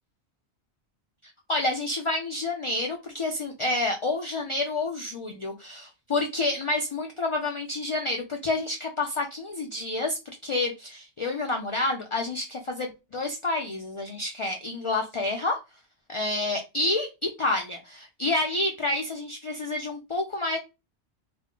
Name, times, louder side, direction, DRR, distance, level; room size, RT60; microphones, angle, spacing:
voice 1, 1.5-10.2 10.4-15.6 16.1-20.6, left 2 dB, 55° left, 2 dB, 0.3 m, -29 dB
3.4 x 2.1 x 3.6 m, 0.26 s
omnidirectional pair, 1.1 m